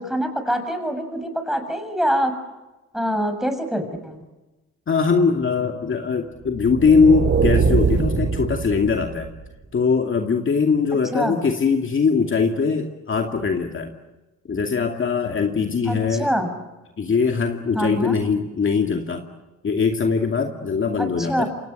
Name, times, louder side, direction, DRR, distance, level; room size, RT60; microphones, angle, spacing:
voice 1, 0.0-2.3 2.9-4.2 11.1-11.4 15.8-16.5 17.7-18.1 21.0-21.5, equal, ahead, 7 dB, 6.6 m, -24 dB
voice 2, 4.9-9.3 9.7-13.9 14.5-16.3 17.0-19.2 19.6-21.4, left 5 dB, 40° left, 3 dB, 2.5 m, -21 dB
sound 1, 6.5-9.4, right 5 dB, 40° right, 5.0 m, -22 dB
28.5 x 25.0 x 7.9 m, 1.1 s
cardioid pair, 90°, 30 cm